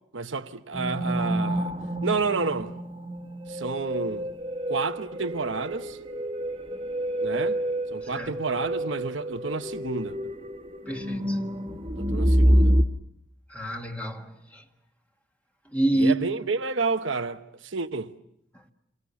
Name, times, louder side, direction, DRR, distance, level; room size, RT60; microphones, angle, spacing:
voice 1, 0.1-1.7 2.0-2.8 3.5-4.3 4.7-6.0 7.2-7.6 7.9-10.2 12.0-12.7 16.0-18.1, right 4 dB, 75° right, 1.1 m, -30 dB
sound 1, 0.7-12.8, equal, 30° right, 1.5 m, -27 dB
voice 2, 8.0-8.3 10.9-11.6 13.5-14.6 15.7-16.2, right 1 dB, 10° left, 1.6 m, -28 dB
28.0 x 24.0 x 7.0 m
head